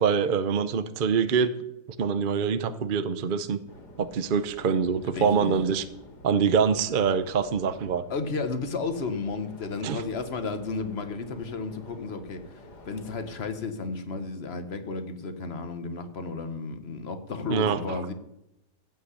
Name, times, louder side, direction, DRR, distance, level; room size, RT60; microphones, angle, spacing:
voice 1, 0.0-1.5 2.0-3.6 4.0-5.8 6.2-8.0 9.8-10.0 17.5-18.0, right 6 dB, 55° right, 11 dB, 0.5 m, -25 dB
sound 1, 3.7-13.5, left 1 dB, 70° left, 2.6 m, -50 dB
voice 2, 5.1-5.5 8.1-18.1, left 4 dB, 40° left, 8 dB, 1.2 m, -33 dB
15.5 x 5.7 x 8.3 m, 0.86 s
omnidirectional pair, 1.8 m